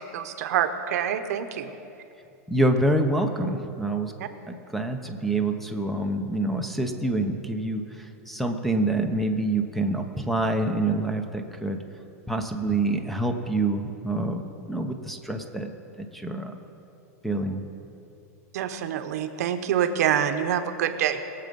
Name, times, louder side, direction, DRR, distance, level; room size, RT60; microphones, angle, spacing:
voice 1, 0.0-1.7 4.2-4.3 18.5-21.2, right 9 dB, 75° right, 9 dB, 1.0 m, -26 dB
voice 2, 2.5-4.1 4.5-11.8 12.3-15.7 16.0-16.5 17.2-17.6, right 2 dB, ahead, 5 dB, 0.9 m, -26 dB
21.5 x 7.6 x 5.4 m, 2.7 s
supercardioid pair, 140°, 9 cm